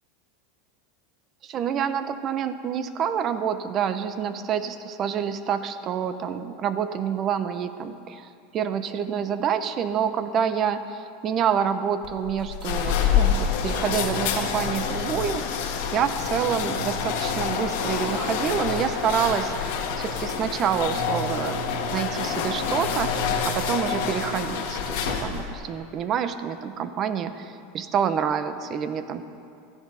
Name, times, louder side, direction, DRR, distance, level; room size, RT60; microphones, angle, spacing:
voice 1, 1.4-21.6 21.9-29.2, right 8 dB, 35° right, 11 dB, 0.8 m, -27 dB
sound 1, 12.0-25.5, left 6 dB, 70° left, 1.6 m, -27 dB
14.5 x 10.5 x 5.6 m, 2.5 s
supercardioid pair, 130°, 0 cm